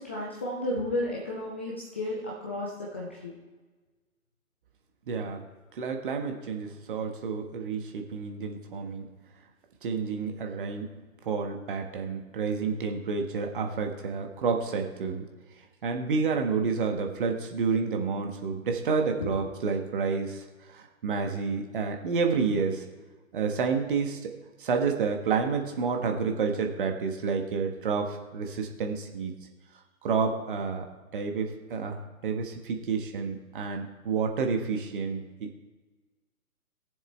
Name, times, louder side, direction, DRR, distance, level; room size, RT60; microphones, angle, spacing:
voice 1, 0.0-3.3 19.2-19.3, left 1 dB, 10° left, -5 dB, 0.5 m, -33 dB
voice 2, 5.1-5.4 5.8-9.1 9.8-10.9 11.2-15.2 15.8-22.8 23.3-24.3 24.6-29.3 30.0-30.8 31.1-35.6, right 5 dB, 40° right, 4 dB, 1.5 m, -29 dB
19.5 x 7.2 x 3.3 m, 1.3 s
figure-of-eight pair, 130°, 42 cm